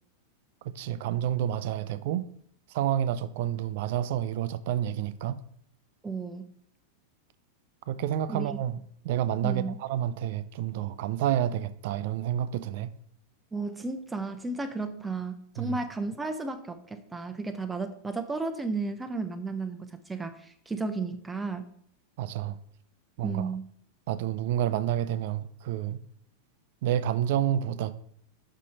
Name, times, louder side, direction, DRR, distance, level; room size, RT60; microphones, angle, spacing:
voice 1, 0.6-2.3 2.7-5.4 7.9-12.9 15.6-15.8 22.2-22.6 23.2-23.5 24.1-26.0 26.8-27.9, right 11 dB, 50° right, 0.5 m, -29 dB
voice 2, 6.0-6.4 8.3-8.6 9.4-9.8 13.5-21.7 23.2-23.7, right 3 dB, 10° right, 0.6 m, -33 dB
6.1 x 5.6 x 4.2 m
figure-of-eight pair, 90°, 0 cm